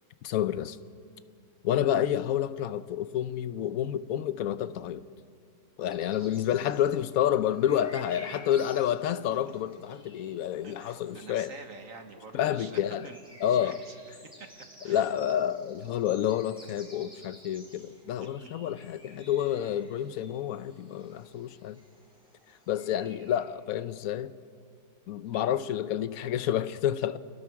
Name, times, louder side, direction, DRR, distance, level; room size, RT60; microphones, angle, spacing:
voice 1, 0.2-0.8 1.6-5.0 5.8-11.5 12.3-13.1 13.4-13.8 14.8-21.8 22.7-24.4 25.1-27.2, left 10 dB, 65° left, 1.1 m, -29 dB
sound 1, 5.9-23.4, equal, 5° right, 5.4 m, -54 dB
voice 2, 10.6-13.2 13.5-13.9 14.2-15.1 18.2-18.5 25.3-25.6, right 4 dB, 55° right, 1.9 m, -48 dB
29.5 x 23.0 x 4.7 m
omnidirectional pair, 1.7 m